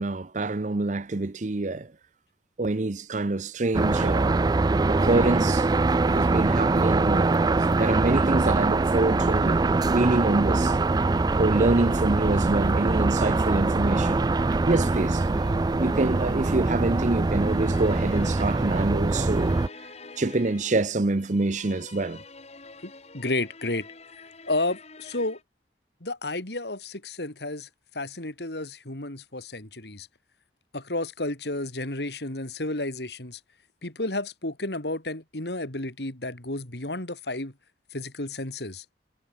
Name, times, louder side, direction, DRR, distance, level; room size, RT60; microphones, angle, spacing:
voice 1, 0.0-1.9 2.6-4.3 4.9-5.6 6.0-7.4 7.7-10.7 11.4-14.3 14.7-15.3 15.8-19.6 20.2-22.2, right 2 dB, 45° right, 0.7 m, -26 dB
sound 1, 3.7-19.7, right 3 dB, 25° right, 0.3 m, -23 dB
sound 2, 6.2-25.4, left 2 dB, 35° left, 3.7 m, -47 dB
voice 2, 22.8-23.9 24.5-25.4 26.0-27.7 27.9-30.1 30.7-33.4 33.8-37.5 37.9-38.8, left 2 dB, 70° left, 3.4 m, -32 dB
head